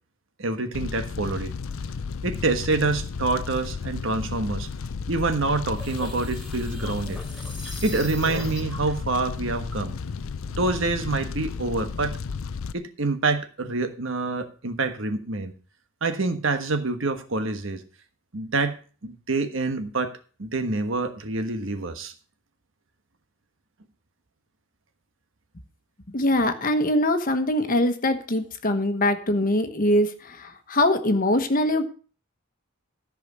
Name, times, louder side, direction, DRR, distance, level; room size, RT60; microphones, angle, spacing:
voice 1, 0.4-1.6 2.2-4.7 5.1-7.2 7.8-9.9 10.6-12.2 12.7-15.5 16.0-17.8 18.3-20.1 20.4-22.1, right 3 dB, 65° right, 7 dB, 1.3 m, -26 dB
Fire, 0.7-12.7, left 5 dB, 75° left, 0.5 m, -33 dB
sound 1, 5.4-8.9, equal, ahead, 2.7 m, -38 dB
voice 2, 26.1-31.8, left 1 dB, 40° left, 8 dB, 1.2 m, -23 dB
14.0 x 4.9 x 6.8 m, 0.40 s
head